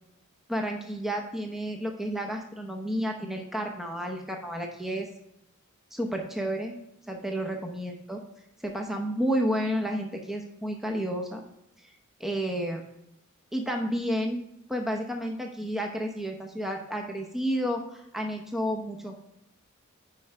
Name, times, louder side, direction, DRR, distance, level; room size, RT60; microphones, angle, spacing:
voice 1, 0.5-5.1 5.9-6.7 7.1-8.2 8.6-11.4 11.8-11.9 12.2-12.8 13.5-14.4 14.7-19.3, equal, ahead, 2 dB, 0.8 m, -31 dB
9.9 x 4.9 x 3.3 m, 0.84 s
head